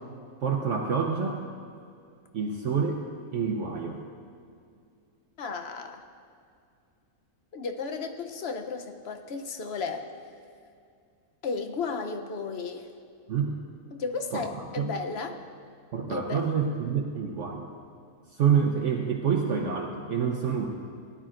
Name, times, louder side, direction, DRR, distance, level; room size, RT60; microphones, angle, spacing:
voice 1, 0.4-1.4 2.3-3.0 3.3-4.0 13.3-13.6 14.3-14.5 14.8-14.9 15.9-17.7 18.3-20.7, right 6 dB, 60° right, 2 dB, 1.0 m, -27 dB
voice 2, 5.4-6.0 7.5-10.1 11.4-12.9 13.9-15.4 16.1-16.4, left 4 dB, 50° left, 5 dB, 0.9 m, -34 dB
18.0 x 11.5 x 2.5 m, 2.3 s
omnidirectional pair, 1.6 m